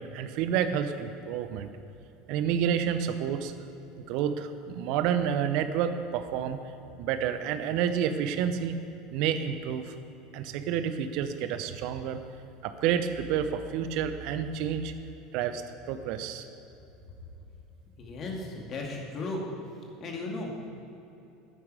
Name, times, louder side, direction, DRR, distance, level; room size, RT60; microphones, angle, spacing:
voice 1, 0.0-1.7 2.3-3.5 4.1-6.6 7.0-8.8 9.1-10.0 10.3-12.2 12.6-14.9 15.3-16.5, right 8 dB, 60° right, 10 dB, 0.7 m, -29 dB
voice 2, 18.0-19.4 20.0-20.7, left 2 dB, 40° left, 0 dB, 2.2 m, -35 dB
11.0 x 9.3 x 4.8 m, 2.8 s
hypercardioid pair, 80°, 0 cm